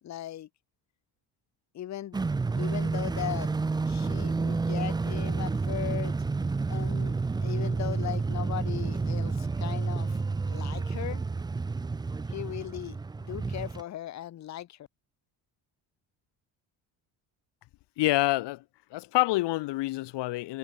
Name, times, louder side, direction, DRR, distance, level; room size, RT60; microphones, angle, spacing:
voice 1, 0.0-0.5 1.7-2.2 2.6-3.5 3.9-6.2 6.7-7.2 7.4-11.2 12.3-14.9, left 12 dB, 40° left, 0.9 m, -38 dB
sound 1, 2.1-13.8, right 4 dB, 10° right, 0.4 m, -30 dB
voice 2, 18.0-18.6 18.9-20.6, left 18 dB, 65° left, 0.9 m, -27 dB
cardioid pair, 160°, 45 cm